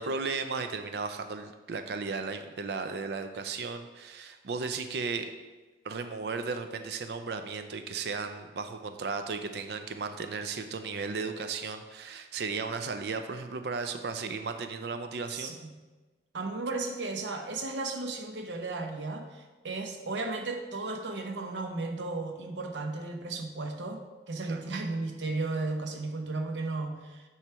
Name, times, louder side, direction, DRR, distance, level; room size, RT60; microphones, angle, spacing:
voice 1, 0.0-5.3 5.8-15.6 24.5-24.6, right 4 dB, 65° right, 8 dB, 0.4 m, -35 dB
voice 2, 15.3-15.8 16.3-24.0 24.3-27.2, right 3 dB, 85° right, 4 dB, 0.8 m, -34 dB
8.9 x 3.1 x 4.6 m, 1.2 s
head